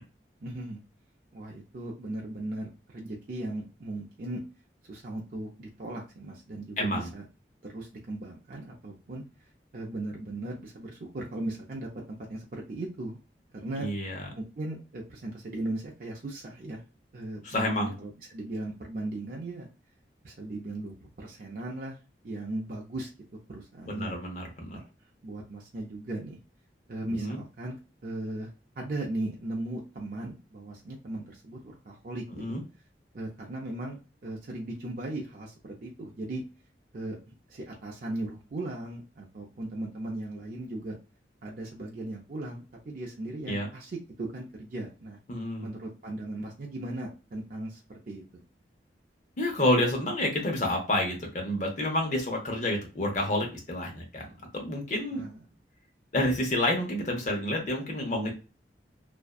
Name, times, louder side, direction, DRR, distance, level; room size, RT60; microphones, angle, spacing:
voice 1, 0.4-0.8 1.3-4.4 4.9-7.2 7.6-9.2 9.7-13.2 13.6-13.9 14.4-16.8 17.1-19.7 20.2-22.0 22.2-23.1 23.5-24.1 24.7-24.8 25.2-26.4 26.9-27.8 28.0-28.5 28.8-32.6 33.1-36.4 36.9-41.0 41.4-45.2 45.6-47.8 48.1-48.4 55.1-55.4, right 2 dB, 50° right, -2 dB, 0.5 m, -37 dB
voice 2, 6.8-7.1 13.8-14.2 17.4-17.9 23.9-24.8 27.1-27.4 32.4-32.6 43.5-43.7 45.3-45.7 49.4-54.3 54.5-55.2 56.1-58.3, left 1 dB, 45° left, 1 dB, 0.8 m, -29 dB
2.6 x 2.2 x 2.2 m, 0.31 s
head